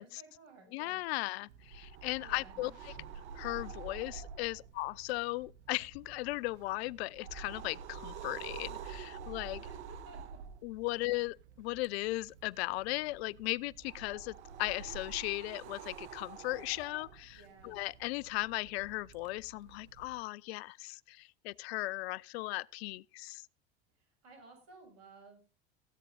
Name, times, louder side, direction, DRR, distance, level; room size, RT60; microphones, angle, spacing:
voice 1, 0.0-1.5 2.2-2.7 9.6-10.4 17.3-17.8 24.2-25.4, right 3 dB, 50° right, 7.5 m, -56 dB
voice 2, 0.7-2.9 3.3-9.7 10.6-23.4, left 21 dB, 65° left, 0.5 m, -37 dB
sound 1, 1.5-20.2, right 7 dB, 80° right, 1.0 m, -49 dB
16.5 x 8.8 x 3.9 m
hypercardioid pair, 85°, 34 cm